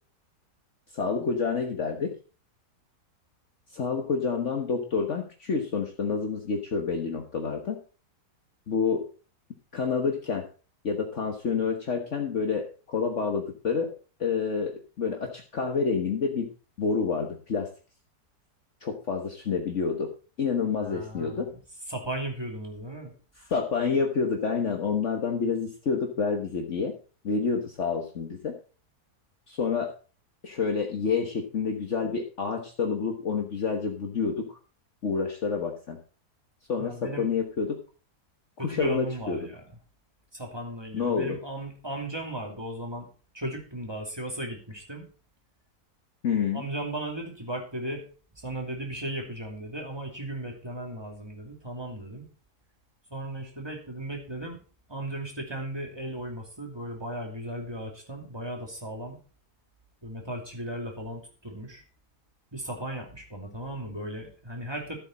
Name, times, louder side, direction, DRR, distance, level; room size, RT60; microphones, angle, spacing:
voice 1, 0.9-2.1 3.7-7.8 8.7-9.1 9.7-10.5 10.8-13.9 14.2-16.5 16.8-17.7 18.8-20.1 20.4-21.5 23.4-26.9 27.2-28.6 29.5-29.9 30.4-34.6 35.0-36.0 36.7-37.8 38.6-39.4 40.9-41.4 46.2-46.7, left 5 dB, 50° left, 2 dB, 1.5 m, -28 dB
voice 2, 20.8-21.6 21.9-23.1 36.8-37.3 38.6-39.6 40.3-43.1 43.3-45.0 46.5-48.0 48.4-52.3 53.1-54.6 54.9-59.2 60.0-61.8 62.5-65.0, right 1 dB, 15° right, 2 dB, 2.7 m, -36 dB
13.5 x 7.9 x 4.2 m, 0.37 s
omnidirectional pair, 1.7 m